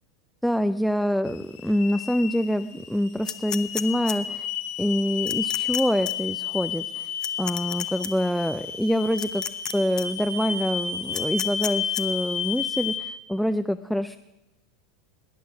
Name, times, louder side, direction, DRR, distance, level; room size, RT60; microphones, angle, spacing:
voice 1, 0.4-4.5 4.8-7.1 7.4-9.4 9.7-14.2, equal, ahead, 11 dB, 0.4 m, -26 dB
sound 1, 1.3-13.0, left 8 dB, 50° left, 1.7 m, -32 dB
sound 2, 3.3-4.2 5.3-5.8 6.1-6.2 7.2-8.1 9.2-9.7 10.0-10.1 11.1-12.0, left 8 dB, 30° left, 0.9 m, -31 dB
18.0 x 10.0 x 6.2 m, 0.97 s
figure-of-eight pair, 85°, 2 cm